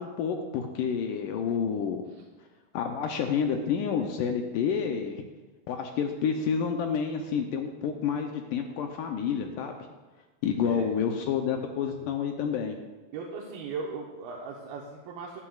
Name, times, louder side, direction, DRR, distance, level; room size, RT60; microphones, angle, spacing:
voice 1, 0.0-2.0 2.7-5.2 5.7-9.7 10.4-12.8, left 7 dB, 80° left, 4 dB, 2.0 m, -29 dB
voice 2, 13.1-15.4, right 4 dB, 75° right, -2 dB, 2.8 m, -38 dB
16.0 x 11.5 x 2.4 m, 1.2 s
omnidirectional pair, 4.4 m